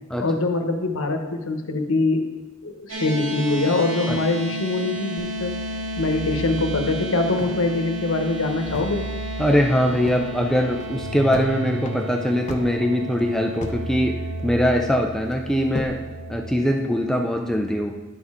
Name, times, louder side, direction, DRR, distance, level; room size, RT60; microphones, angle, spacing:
voice 1, 0.2-2.2 2.6-5.6 6.0-9.1, left 3 dB, 80° left, 5 dB, 1.0 m, -23 dB
sound 1, 2.9-17.3, equal, 70° right, 2.6 m, -33 dB
sound 2, 5.2-16.6, right 2 dB, 55° right, 0.9 m, -36 dB
sound 3, 7.4-9.1 9.4-9.5 9.8-10.3 10.7-11.5 11.8-13.9 14.1-14.8 15.3-16.0, left 1 dB, 35° left, 0.7 m, -35 dB
voice 2, 9.4-16.0 16.3-18.0, equal, 5° left, 3 dB, 0.4 m, -22 dB
10.5 x 6.5 x 3.6 m, 1.2 s
head